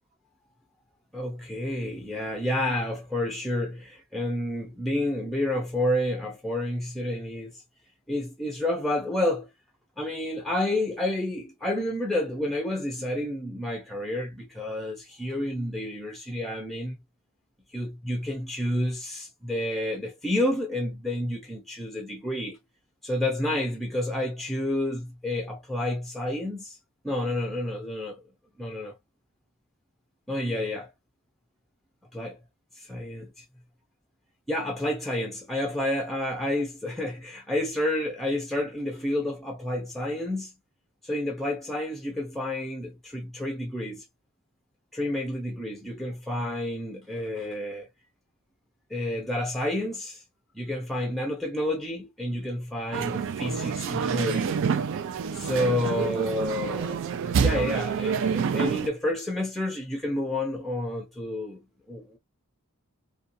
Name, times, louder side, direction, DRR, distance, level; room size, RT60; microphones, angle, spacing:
voice 1, 1.1-7.6 8.1-9.5 10.0-17.0 17.7-22.6 23.0-26.8 27.0-28.2 28.6-29.0 30.3-30.9 32.1-32.4 32.9-33.3 34.5-40.5 41.0-44.0 44.9-47.9 48.9-50.2 50.6-54.5 55.3-57.0 57.3-62.2, left 1 dB, ahead, 0.5 m, -30 dB
sound 1, 52.9-58.9, right 6 dB, 60° right, 0.3 m, -27 dB
2.4 x 2.2 x 2.5 m
head